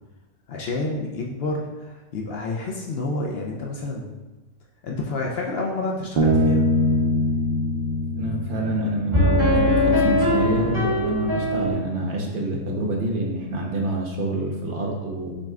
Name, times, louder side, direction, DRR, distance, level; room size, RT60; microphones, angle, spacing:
voice 1, 0.5-4.2 4.8-6.7, left 2 dB, 60° left, -1 dB, 0.6 m, -29 dB
sound 1, 6.2-11.7, left 1 dB, 20° right, 1.2 m, -23 dB
Bass guitar, 6.2-9.7, equal, 65° right, 0.5 m, -23 dB
voice 2, 8.2-15.3, right 2 dB, 45° right, -1 dB, 0.8 m, -27 dB
6.2 x 2.2 x 3.6 m, 1.1 s
omnidirectional pair, 1.4 m